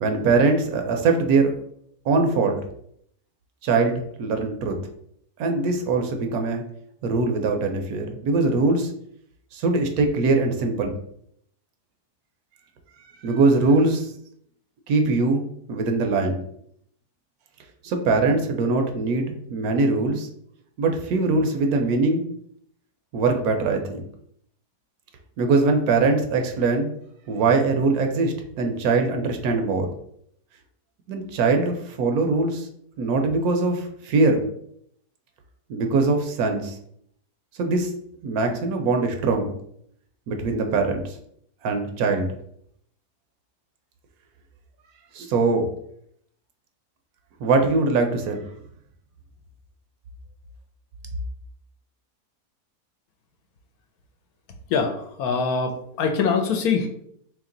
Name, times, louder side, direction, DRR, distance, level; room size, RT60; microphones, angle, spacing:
voice 1, 0.0-1.5 2.1-2.6 3.6-4.8 5.4-6.6 7.0-8.9 9.5-11.0 13.2-14.1 14.9-15.4 15.7-16.4 17.8-20.3 20.8-22.3 23.1-24.1 25.4-26.9 27.3-29.9 31.1-32.7 33.0-34.4 35.7-36.8 37.6-37.9 38.2-39.5 40.3-41.1 41.6-42.3 45.1-45.7 47.4-48.4, right 3 dB, 75° right, 4 dB, 1.0 m, -22 dB
voice 2, 54.7-56.9, left 5 dB, 75° left, 5 dB, 1.0 m, -23 dB
3.1 x 3.0 x 3.7 m, 0.70 s
omnidirectional pair, 1.7 m